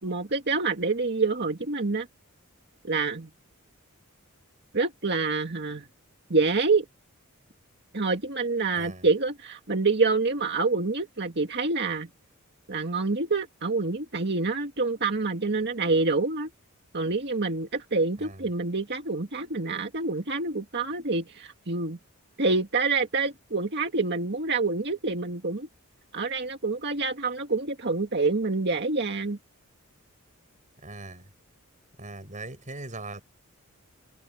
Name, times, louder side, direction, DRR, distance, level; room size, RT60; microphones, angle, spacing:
voice 1, 0.0-2.1 2.8-3.3 4.7-5.8 6.3-6.9 7.9-12.1 12.7-16.5 16.9-22.0 22.4-25.7 26.1-29.4, right 3 dB, 50° right, 2.0 m, -27 dB
voice 2, 8.7-9.1 18.2-18.5 30.8-31.3 32.0-33.2, right 2 dB, 35° right, 7.5 m, -40 dB
head